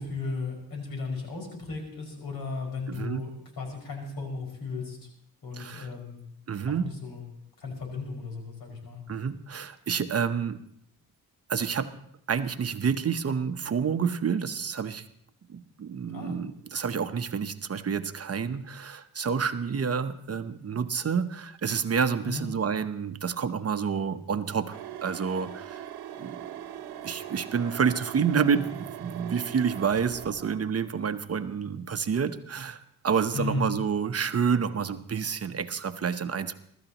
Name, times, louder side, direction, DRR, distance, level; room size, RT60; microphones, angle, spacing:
voice 1, 0.0-3.3 3.6-5.1 5.4-6.2 6.8-7.2 7.6-9.0 16.1-16.4 22.2-22.5 33.3-33.7, left 3 dB, 75° left, 2 dB, 5.8 m, -35 dB
voice 2, 2.9-3.3 5.5-5.9 6.5-6.9 9.1-10.6 11.5-11.9 12.3-15.1 15.5-25.9 26.2-26.5 27.0-36.5, right 6 dB, 40° right, 9 dB, 0.9 m, -29 dB
sound 1, 24.7-30.6, right 11 dB, 85° right, 0.9 m, -41 dB
23.5 x 13.5 x 3.0 m, 0.68 s
cardioid pair, 85°, 37 cm